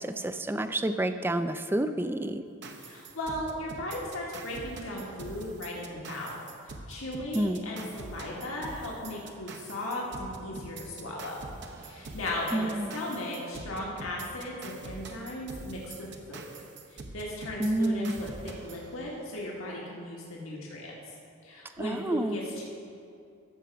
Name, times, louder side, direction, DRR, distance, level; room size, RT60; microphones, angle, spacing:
voice 1, 0.0-2.4 7.3-7.6 12.5-12.9 17.6-18.2 21.8-22.4, right 1 dB, 10° right, 10 dB, 0.3 m, -29 dB
sound 1, 2.6-19.5, right 3 dB, 60° right, 0.8 m, -45 dB
voice 2, 2.8-6.4 6.9-11.5 11.8-16.5 16.9-21.1 21.4-22.7, left 1 dB, 85° left, -3 dB, 1.6 m, -37 dB
14.5 x 5.0 x 5.7 m, 2.4 s
head